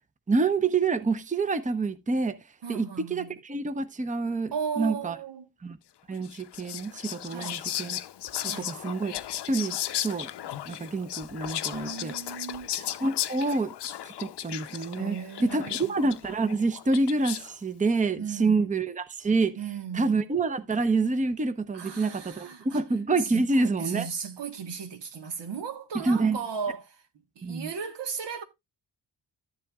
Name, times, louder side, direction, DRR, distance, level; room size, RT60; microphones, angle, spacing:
voice 1, 0.3-2.4 2.7-5.2 5.6-5.8 6.1-8.0 8.4-9.1 9.5-10.3 10.7-12.1 13.0-13.7 14.2-19.6 19.9-24.1 26.0-26.4 27.4-27.7, right 3 dB, 20° right, 0.7 m, -27 dB
voice 2, 2.6-3.4 4.5-5.5 7.3-7.6 8.4-8.7 11.7-12.7 14.9-15.9 18.2-18.7 19.6-20.2 21.7-22.8 23.2-27.0 27.3-28.4, right 6 dB, 75° right, 1.4 m, -36 dB
Whispering, 6.2-17.6, left 11 dB, 70° left, 0.7 m, -35 dB
12.5 x 7.5 x 2.3 m
cardioid pair, 65°, 42 cm